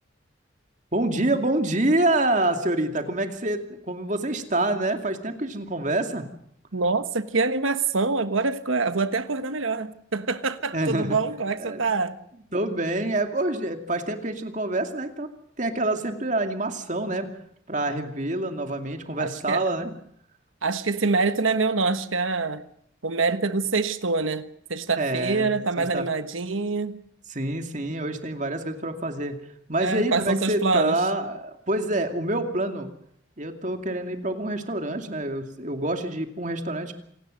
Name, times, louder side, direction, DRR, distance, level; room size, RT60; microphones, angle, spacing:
voice 1, 0.9-6.3 10.7-11.2 11.6-11.9 12.5-15.3 15.6-17.3 17.7-19.9 25.0-26.1 27.3-29.4 29.7-32.9 33.4-36.9, right 2 dB, 40° right, 2.5 m, -27 dB
voice 2, 6.7-12.2 19.2-19.7 20.6-22.6 23.0-27.0 29.8-31.0, right 3 dB, 90° right, 1.4 m, -25 dB
27.5 x 18.5 x 6.5 m
head